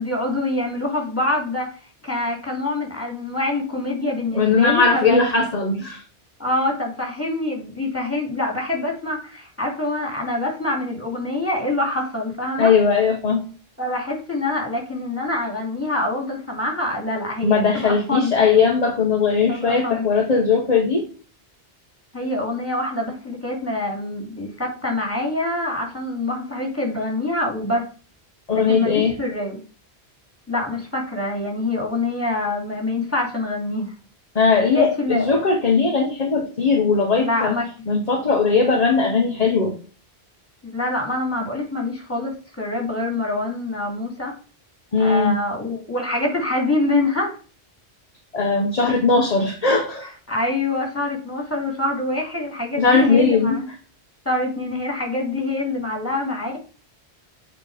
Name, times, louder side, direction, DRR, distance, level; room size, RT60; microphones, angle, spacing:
voice 1, 0.0-5.2 6.4-12.7 13.8-18.6 19.5-20.1 22.1-27.9 28.5-29.6 30.5-33.9 34.7-35.4 37.2-37.9 40.6-44.3 45.0-47.4 50.3-53.7 54.2-56.6, left 2 dB, 10° left, 0 dB, 2.8 m, -25 dB
voice 2, 4.3-6.0 12.6-13.4 17.4-21.0 28.5-29.2 34.3-37.5 37.9-39.8 44.9-45.4 48.3-50.1 52.8-53.6, left 4 dB, 35° left, 2 dB, 1.1 m, -19 dB
7.6 x 4.4 x 4.9 m, 0.37 s
omnidirectional pair, 1.1 m